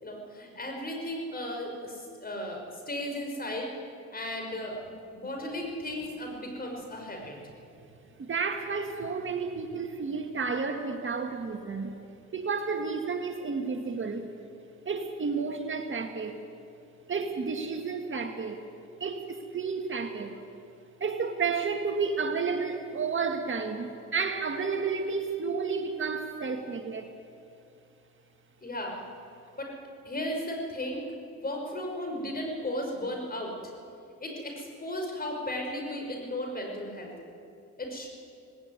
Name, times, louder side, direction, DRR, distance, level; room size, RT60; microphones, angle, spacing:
voice 1, 0.0-3.7 4.1-7.4 28.6-29.0 29.6-29.7 30.0-31.1 31.4-33.7 34.2-37.1 37.8-38.1, left 1 dB, 30° left, 2 dB, 5.6 m, -35 dB
voice 2, 8.2-12.0 12.3-14.3 14.9-16.4 17.1-18.6 19.0-20.4 21.0-27.1, right 5 dB, 40° right, 5 dB, 1.7 m, -31 dB
18.5 x 17.5 x 9.6 m, 2.5 s
cardioid pair, 90°, 30 cm